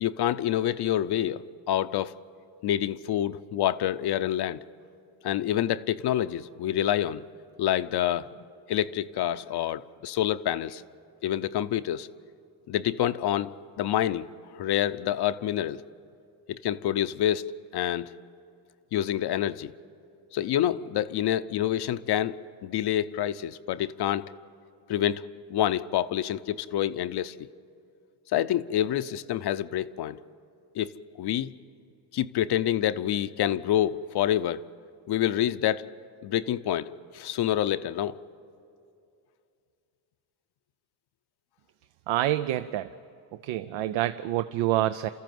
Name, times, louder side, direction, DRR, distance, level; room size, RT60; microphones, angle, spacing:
voice 1, 0.0-2.2 2.6-4.6 5.2-7.2 7.6-8.3 8.7-10.8 11.2-12.1 12.7-13.5 13.8-15.8 16.5-17.5 17.7-18.1 18.9-19.7 20.3-24.3 24.9-27.5 28.3-30.2 30.7-31.5 32.1-34.6 35.1-35.9 36.2-38.2, left 11 dB, 55° left, 12 dB, 0.7 m, -27 dB
voice 2, 42.1-42.9 43.4-45.1, right 14 dB, 85° right, 12 dB, 0.7 m, -27 dB
29.5 x 14.0 x 7.7 m, 2.5 s
cardioid pair, 105°, 46 cm